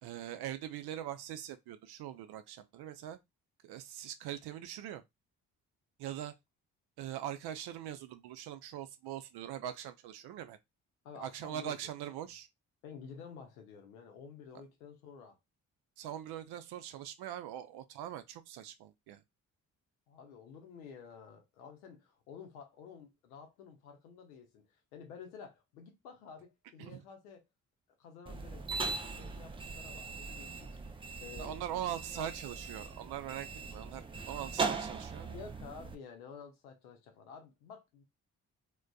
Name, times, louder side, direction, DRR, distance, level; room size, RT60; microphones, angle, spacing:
voice 1, 0.0-3.2 3.6-5.0 6.0-6.3 7.0-10.6 11.2-12.5 16.0-19.2 26.8-27.0 31.4-35.3, right 11 dB, 65° right, 0.5 m, -42 dB
voice 2, 11.0-11.8 12.2-12.3 12.8-15.4 20.1-27.4 28.0-31.8 32.1-32.3 35.1-38.0, left 6 dB, 90° left, 0.7 m, -51 dB
sound 1, 28.3-36.0, right 4 dB, 15° right, 0.3 m, -40 dB
2.4 x 2.2 x 2.2 m
hypercardioid pair, 40°, 42 cm